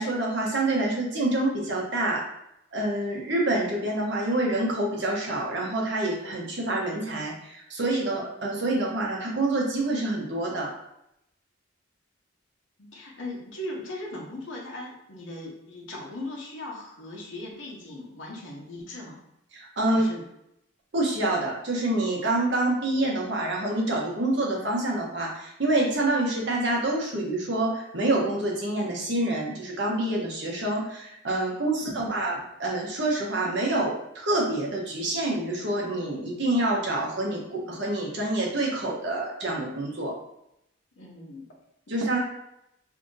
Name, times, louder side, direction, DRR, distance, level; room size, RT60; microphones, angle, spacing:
voice 1, 0.0-2.2 2.7-10.7 19.5-20.0 20.9-40.1 41.9-42.2, right 2 dB, 60° right, -2 dB, 0.8 m, -27 dB
voice 2, 12.8-19.2 19.9-20.3 31.9-32.3 41.0-41.5, left 1 dB, 75° left, -2 dB, 0.9 m, -39 dB
2.8 x 2.5 x 3.8 m, 0.81 s
head